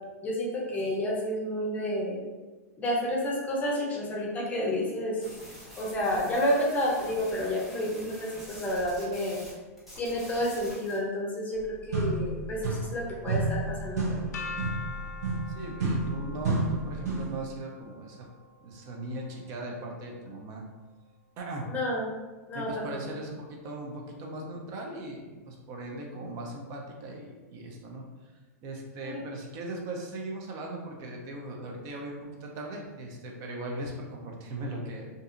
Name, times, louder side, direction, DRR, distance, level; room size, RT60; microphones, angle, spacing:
voice 1, 0.2-2.3 2.8-5.2 5.8-9.4 10.0-11.6 11.9-14.4 21.7-22.0 22.5-22.9 29.0-29.2, equal, 15° left, -3 dB, 0.6 m, -30 dB
sound 1, 5.2-9.5 9.8-11.0, left 1 dB, 5° right, 1.0 m, -47 dB
sound 2, 11.5-11.6 11.9-13.0 13.3-17.4, right 2 dB, 80° right, 0.8 m, -30 dB
sound 3, 14.3-20.3, left 4 dB, 90° left, 0.5 m, -44 dB
voice 2, 15.5-18.3 18.6-20.7 21.4-21.7 22.5-28.3 28.6-35.1, right 1 dB, 40° right, 1 dB, 0.6 m, -39 dB
2.6 x 2.5 x 2.5 m, 1.3 s
hypercardioid pair, 140°, 9 cm